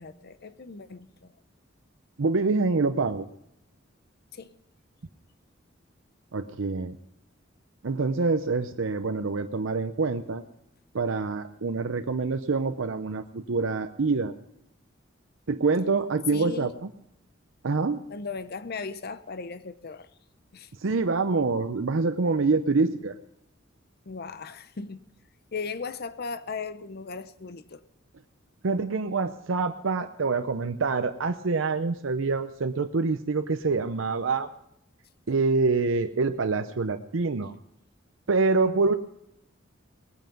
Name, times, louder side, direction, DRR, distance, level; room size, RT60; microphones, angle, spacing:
voice 1, 0.0-1.3 4.3-4.5 16.3-16.7 18.1-20.1 20.5-20.7 24.1-25.1 25.5-27.8 38.6-38.8, left 4 dB, 55° left, 0.7 m, -37 dB
voice 2, 2.2-3.3 6.3-7.0 7.8-10.4 10.9-14.3 15.5-16.9 17.6-18.0 20.8-23.2 28.6-34.5 35.3-37.5 38.3-38.9, right 4 dB, 75° right, 0.6 m, -26 dB
18.5 x 9.2 x 5.2 m
head